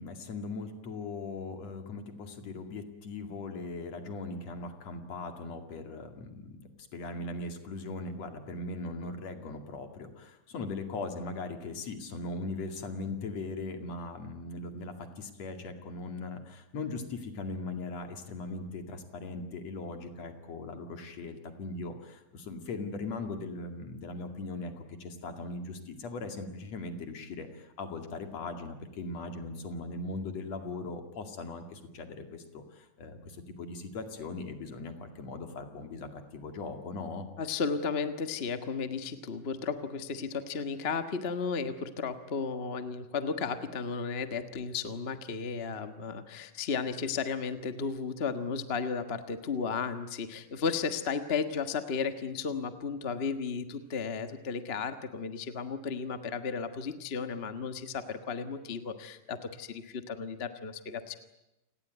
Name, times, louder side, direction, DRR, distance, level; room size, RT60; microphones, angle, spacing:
voice 1, 0.0-37.3, left 3 dB, 60° left, 6 dB, 3.4 m, -39 dB
voice 2, 37.4-61.2, left 5 dB, 35° left, 9 dB, 1.0 m, -34 dB
29.0 x 19.0 x 9.3 m, 0.94 s
omnidirectional pair, 3.4 m